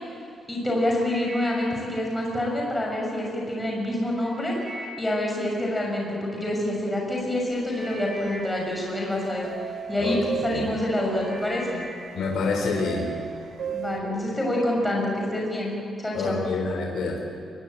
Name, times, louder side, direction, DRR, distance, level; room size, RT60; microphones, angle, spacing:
voice 1, 0.5-4.5 5.0-9.5 9.9-11.8 13.7-15.7 16.0-16.4, left 1 dB, 10° left, -2 dB, 6.5 m, -27 dB
sound 1, 0.8-3.2 3.7-6.6 7.3-7.4 7.7-10.0 10.6-10.8 11.1-12.7 13.0-13.5 14.1-14.2, equal, 20° right, 6.4 m, -43 dB
sound 2, 7.4-7.6 7.9-8.7 9.4-14.0, right 8 dB, 65° right, 1.5 m, -36 dB
voice 2, 12.1-13.1 16.1-17.2, left 4 dB, 70° left, 0 dB, 4.4 m, -27 dB
24.0 x 21.0 x 9.0 m, 2.5 s
wide cardioid pair, 175°, 0 cm